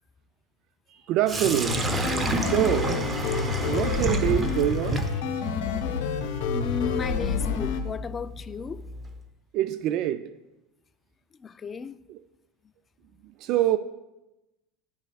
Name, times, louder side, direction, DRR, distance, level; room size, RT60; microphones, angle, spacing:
voice 1, 0.9-1.9 2.4-3.0 3.6-5.2 9.5-10.4 12.1-12.2 13.4-13.8, right 12 dB, 60° right, 0.3 m, -25 dB
Sink (filling or washing), 1.3-9.2, right 3 dB, 25° right, 0.7 m, -32 dB
sound 1, 1.4-7.8, left 6 dB, 85° left, 0.8 m, -28 dB
voice 2, 6.5-8.9 11.4-12.0, left 5 dB, 25° left, 0.3 m, -34 dB
10.5 x 5.9 x 2.3 m
supercardioid pair, 110°, 0 cm